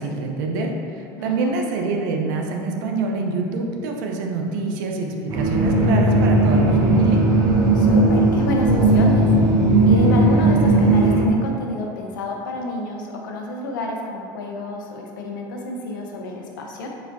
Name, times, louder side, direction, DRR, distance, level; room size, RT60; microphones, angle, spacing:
voice 1, 0.0-7.2, right 3 dB, 75° right, 2 dB, 0.6 m, -26 dB
voice 2, 1.2-1.6 7.7-9.3 9.8-16.9, left 1 dB, 90° left, 1 dB, 0.6 m, -29 dB
sound 1, 5.3-11.2, right 2 dB, 40° right, 0.8 m, -16 dB
4.4 x 4.2 x 2.8 m, 2.5 s
supercardioid pair, 95°, 10 cm